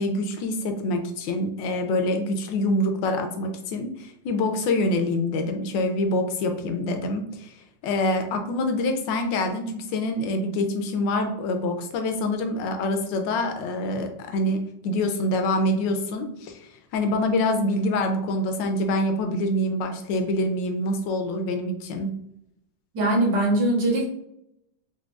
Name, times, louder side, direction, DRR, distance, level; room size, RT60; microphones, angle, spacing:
voice 1, 0.0-7.5 7.8-22.1, left 1 dB, 85° left, 5 dB, 1.3 m, -26 dB
voice 2, 22.9-24.1, right 1 dB, 70° right, -4 dB, 1.8 m, -21 dB
4.8 x 2.2 x 2.3 m, 0.79 s
omnidirectional pair, 2.0 m